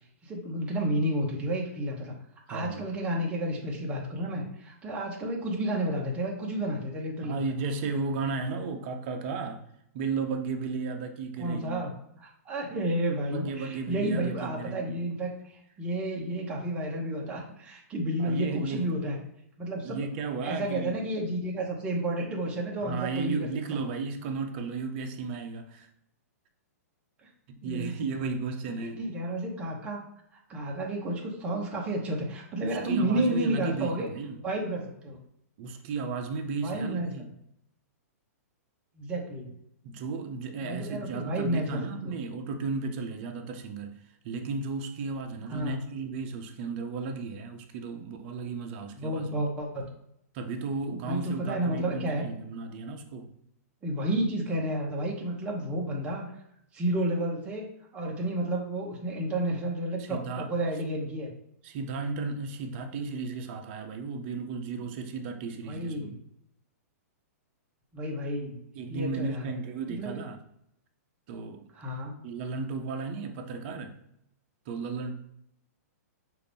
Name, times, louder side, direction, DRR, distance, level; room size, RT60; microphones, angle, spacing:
voice 1, 0.2-2.1 2.5-7.4 11.4-11.9 12.2-19.2 19.6-20.0 20.4-23.5 27.2-27.3 27.6-28.4 28.8-30.0 30.5-34.1 34.4-35.2 36.6-37.1 39.0-39.5 40.6-42.2 45.5-45.8 49.0-49.8 50.9-52.2 53.8-56.2 56.7-57.6 57.9-61.3 65.7-66.2 67.9-68.6 68.9-69.4 69.9-70.2 71.7-72.1, right 1 dB, 15° right, -2 dB, 0.8 m, -31 dB
voice 2, 2.5-2.9 7.2-9.6 9.9-11.9 13.3-15.0 18.2-18.9 19.8-21.1 22.8-25.9 27.5-29.0 32.6-34.4 35.6-37.3 39.8-44.0 44.2-49.4 50.3-53.3 60.0-60.5 61.6-66.1 68.8-70.4 71.3-71.7 72.2-74.0 74.7-75.1, right 4 dB, 40° right, 5 dB, 0.6 m, -34 dB
5.7 x 2.5 x 3.4 m, 0.75 s
hypercardioid pair, 155°, 9 cm